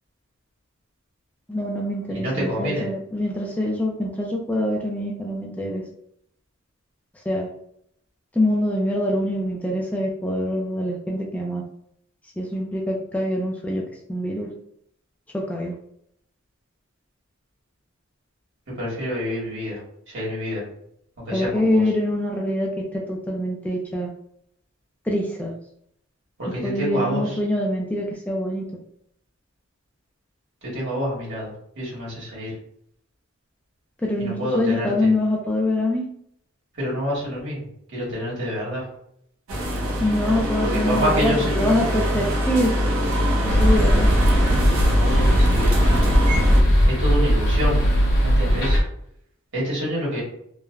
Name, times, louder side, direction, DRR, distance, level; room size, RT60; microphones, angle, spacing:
voice 1, 1.5-5.8 7.3-7.5 8.3-11.6 12.4-13.8 14.1-14.5 15.3-15.7 21.3-24.1 25.1-25.5 26.6-28.6 34.0-36.0 40.0-42.7 43.5-44.1, left 1 dB, 5° left, -1 dB, 0.3 m, -24 dB
voice 2, 2.1-2.9 18.8-19.8 20.1-20.6 21.2-21.8 26.4-27.4 30.6-32.5 34.2-35.1 36.8-37.6 37.9-38.8 40.6-41.6 44.9-46.1 46.8-47.8 48.2-48.8 49.5-50.2, equal, 60° right, -5 dB, 1.4 m, -27 dB
sound 1, 39.5-46.6, equal, 80° right, 0.6 m, -22 dB
sound 2, 43.5-48.8, equal, 50° left, 0.8 m, -19 dB
3.2 x 2.0 x 2.3 m, 0.70 s
head